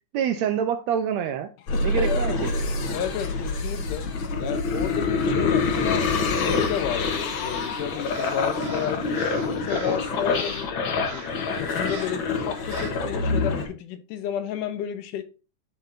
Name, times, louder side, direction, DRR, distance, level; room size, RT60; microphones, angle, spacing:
voice 1, 0.1-1.5 1.8-2.5, right 8 dB, 80° right, 1.6 m, -26 dB
voice 2, 1.7-2.4 2.9-4.1 4.4-10.7 11.1-11.3 11.6-15.2, left 9 dB, 80° left, 2.4 m, -32 dB
sound 1, 1.7-13.7, left 4 dB, 60° left, 1.3 m, -26 dB
Crow, 8.1-10.1 10.3-10.7 11.1-11.4 11.9-12.2 12.7-13.0, right 6 dB, 65° right, 2.0 m, -42 dB
12.0 x 4.1 x 2.6 m
omnidirectional pair, 3.6 m